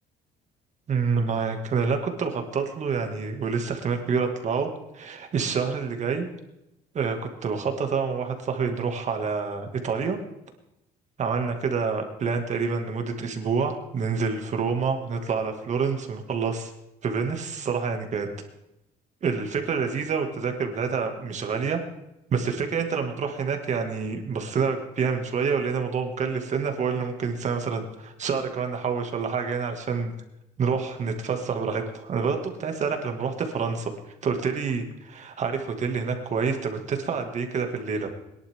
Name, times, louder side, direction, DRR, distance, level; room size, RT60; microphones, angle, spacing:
voice 1, 0.9-6.3 6.9-10.2 11.2-16.7 17.0-18.3 19.2-21.8 22.3-30.1 30.6-33.9 34.2-38.1, right 5 dB, 45° right, 4 dB, 2.2 m, -27 dB
21.5 x 11.0 x 3.7 m, 0.88 s
cardioid pair, 110°, 17 cm